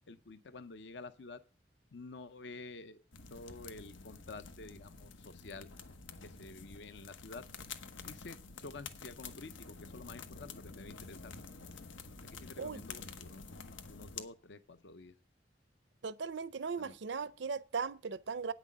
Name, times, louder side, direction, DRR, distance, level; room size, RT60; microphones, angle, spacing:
voice 1, 0.1-1.4 1.9-3.0 3.3-5.7 6.2-7.5 8.0-11.3 12.2-15.1 16.8-16.9, left 3 dB, 65° left, 0.7 m, -50 dB
sound 1, 3.1-14.2, left 5 dB, 85° left, 1.1 m, -49 dB
voice 2, 16.0-18.5, right 5 dB, 70° right, 0.5 m, -38 dB
9.2 x 6.2 x 7.4 m
head